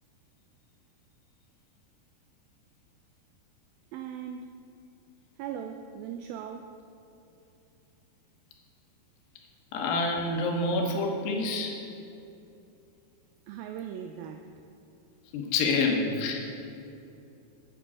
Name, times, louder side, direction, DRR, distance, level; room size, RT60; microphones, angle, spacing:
voice 1, 3.9-4.5 5.4-6.8 13.5-14.5, right 8 dB, 90° right, 6 dB, 2.1 m, -39 dB
voice 2, 9.7-11.8 15.3-16.6, left 3 dB, 85° left, 2 dB, 3.3 m, -27 dB
8.5 x 7.6 x 7.2 m, 2.7 s
omnidirectional pair, 4.7 m